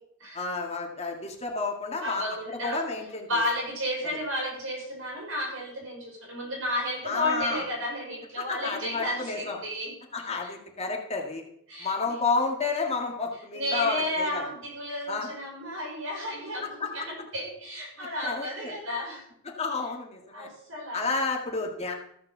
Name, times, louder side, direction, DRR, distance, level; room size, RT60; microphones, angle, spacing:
voice 1, 0.3-3.3 7.1-7.6 8.4-9.6 10.1-11.4 11.8-14.4 15.1-15.3 16.6-16.9 18.2-18.7 19.6-20.5 20.9-21.9, left 4 dB, 30° left, 1 dB, 1.9 m, -30 dB
voice 2, 2.0-2.8 3.3-10.0 10.4-10.5 11.7-12.1 13.5-19.3 20.3-21.0, left 1 dB, 75° right, -1 dB, 5.5 m, -33 dB
14.0 x 5.8 x 6.6 m, 0.72 s
head